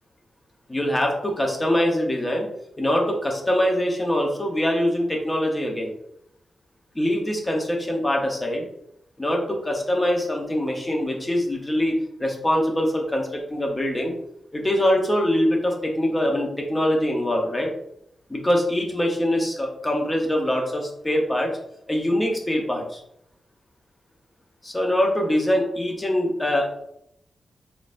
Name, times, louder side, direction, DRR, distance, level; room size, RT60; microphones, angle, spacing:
voice 1, 0.7-2.5 2.8-5.9 6.9-8.7 9.2-14.1 14.5-17.7 18.3-21.5 21.9-23.0 24.6-26.7, left 1 dB, 15° left, 1 dB, 0.8 m, -23 dB
3.9 x 2.6 x 2.5 m, 0.75 s
wide cardioid pair, 115°, 0 cm